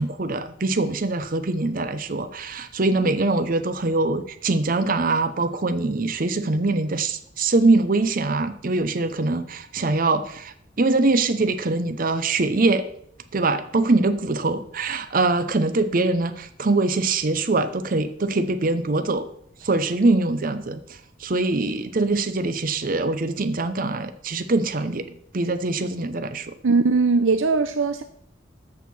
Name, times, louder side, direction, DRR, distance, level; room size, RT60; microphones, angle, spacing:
voice 1, 0.0-12.8 13.3-19.3 19.6-20.8 21.2-25.0 25.3-26.6, right 3 dB, 45° right, 10 dB, 0.7 m, -23 dB
voice 2, 26.6-28.0, right 4 dB, 85° right, 9 dB, 0.6 m, -20 dB
13.5 x 4.6 x 7.0 m, 0.70 s
head